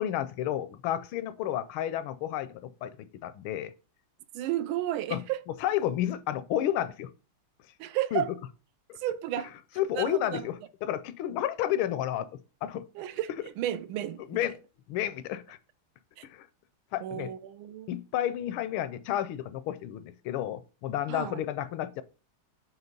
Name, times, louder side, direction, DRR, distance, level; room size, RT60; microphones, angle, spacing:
voice 1, 0.0-3.7 5.1-5.2 5.5-7.1 8.1-8.2 8.9-9.0 9.8-12.3 12.6-12.8 14.3-14.5 14.9-15.6 16.3-16.5 16.9-17.3 17.9-22.0, left 12 dB, 80° left, 1.4 m, -31 dB
voice 2, 4.3-5.4 7.8-8.3 9.0-9.5 9.9-10.4 12.9-13.3 13.6-14.5 16.2-16.3 17.0-17.9 21.1-21.4, right 12 dB, 80° right, 1.4 m, -32 dB
7.3 x 3.2 x 5.2 m
omnidirectional pair, 2.3 m